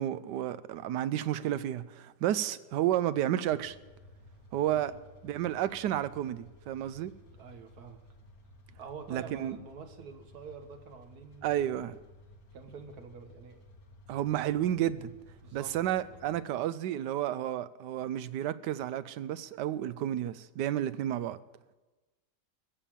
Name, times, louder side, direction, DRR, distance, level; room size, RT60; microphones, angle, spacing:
voice 1, 0.0-3.8 4.5-4.9 5.2-7.1 9.1-9.6 11.4-12.0 14.1-15.1 15.5-21.4, right 12 dB, 85° right, 1.2 m, -31 dB
sound 1, 3.4-16.4, left 1 dB, 80° left, 2.0 m, -56 dB
voice 2, 7.3-8.0 8.8-11.9 12.5-13.7 15.4-15.7, right 5 dB, 65° right, 1.8 m, -47 dB
21.0 x 7.0 x 7.3 m
omnidirectional pair, 1.8 m